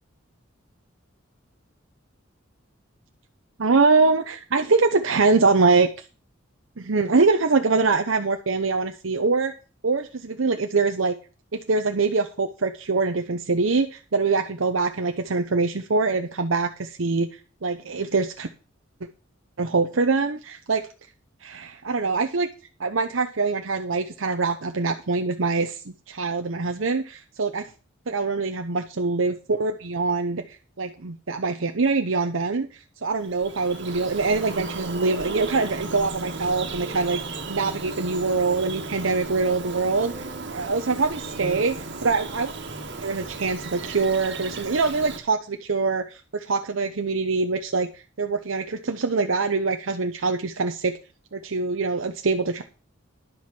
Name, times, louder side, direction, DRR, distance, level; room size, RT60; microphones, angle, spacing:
voice 1, 3.6-5.9 6.8-9.5 9.8-11.1 11.7-17.3 17.6-18.5 19.6-20.8 21.4-22.5 22.8-25.8 26.1-27.6 28.1-37.2 37.5-40.1 40.5-41.8 42.0-42.5 43.0-47.9 48.2-50.9 51.3-52.6, right 4 dB, 80° right, 5 dB, 0.9 m, -24 dB
Bird vocalization bird call bird song, 33.1-45.2, right 3 dB, 60° right, 1.7 m, -35 dB
11.0 x 7.4 x 6.1 m, 0.35 s
head